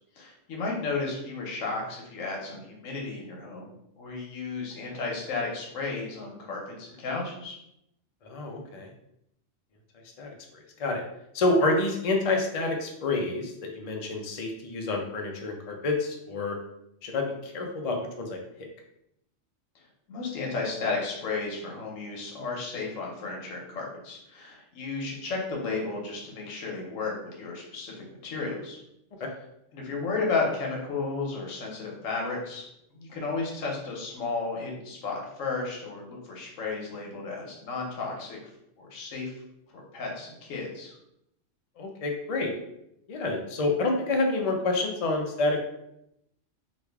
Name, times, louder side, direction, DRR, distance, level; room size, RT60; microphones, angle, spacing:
voice 1, 0.2-3.7 4.0-7.6 20.1-27.9 28.2-28.8 29.7-32.6 32.9-38.4 38.8-39.3 39.7-40.9, left 4 dB, 90° left, -1 dB, 1.2 m, -33 dB
voice 2, 8.2-8.9 10.2-11.0 11.3-16.6 17.0-18.4 29.2-29.3 41.8-42.5 43.1-45.6, left 2 dB, 55° left, 2 dB, 0.4 m, -28 dB
3.1 x 2.4 x 3.4 m, 0.80 s
omnidirectional pair, 1.3 m